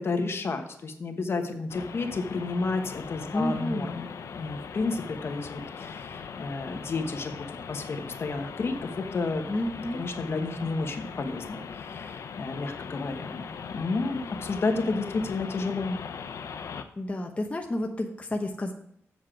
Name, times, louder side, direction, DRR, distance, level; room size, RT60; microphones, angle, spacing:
voice 1, 0.0-3.9 4.3-7.3 7.7-9.4 9.9-13.4 13.7-16.0, left 3 dB, 55° left, 6 dB, 1.1 m, -31 dB
sound 1, 1.7-16.8, left 6 dB, 85° left, 0.7 m, -40 dB
voice 2, 3.3-4.1 9.5-10.1 17.0-18.7, left 1 dB, 25° left, 2 dB, 0.9 m, -30 dB
7.7 x 7.3 x 4.8 m, 0.70 s
wide cardioid pair, 120°, 5 cm